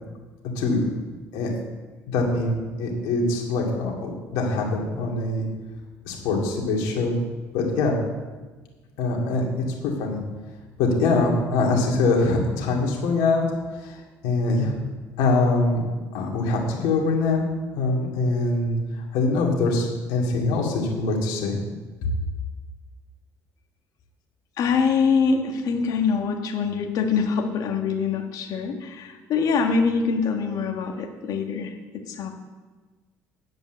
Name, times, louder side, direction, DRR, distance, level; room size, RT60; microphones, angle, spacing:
voice 1, 2.1-5.5 6.1-7.2 7.5-8.0 9.0-9.4 9.8-10.2 10.8-13.4 13.8-14.0 14.2-14.7 15.2-15.8 16.1-17.5 17.7-18.8 19.1-21.6, left 3 dB, 80° left, -1 dB, 2.5 m, -23 dB
voice 2, 24.6-31.7 32.1-32.3, left 5 dB, 65° left, 4 dB, 1.6 m, -24 dB
9.6 x 5.3 x 8.1 m, 1.3 s
supercardioid pair, 80°, 7 cm